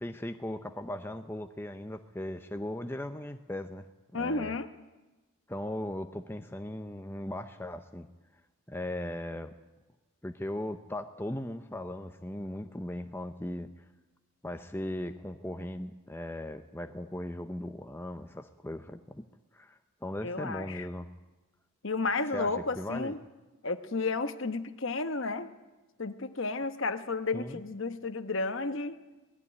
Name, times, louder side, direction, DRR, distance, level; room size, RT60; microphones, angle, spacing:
voice 1, 0.0-3.8 4.1-4.5 5.5-8.1 8.7-9.5 10.2-13.7 14.4-19.3 19.5-21.1 22.3-23.1 27.3-27.6, left 1 dB, 10° left, 7 dB, 0.6 m, -38 dB
voice 2, 4.1-4.7 20.2-20.9 21.8-23.2 23.6-25.5 26.0-29.0, left 3 dB, 60° left, 9 dB, 1.1 m, -32 dB
19.0 x 14.5 x 9.9 m, 1.1 s
head